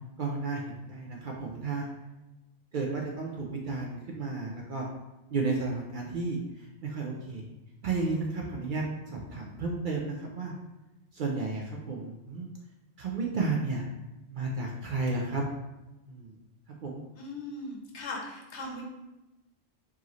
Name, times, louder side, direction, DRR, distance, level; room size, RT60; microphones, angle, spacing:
voice 1, 0.2-1.9 2.7-4.9 5.3-7.5 7.8-10.5 11.1-12.5 13.0-13.9 14.3-15.4 16.0-16.4 16.8-17.0, right 3 dB, 55° right, -1 dB, 0.6 m, -32 dB
voice 2, 17.1-18.8, left 2 dB, 70° left, -1 dB, 1.1 m, -39 dB
4.6 x 2.8 x 3.0 m, 1.0 s
omnidirectional pair, 1.2 m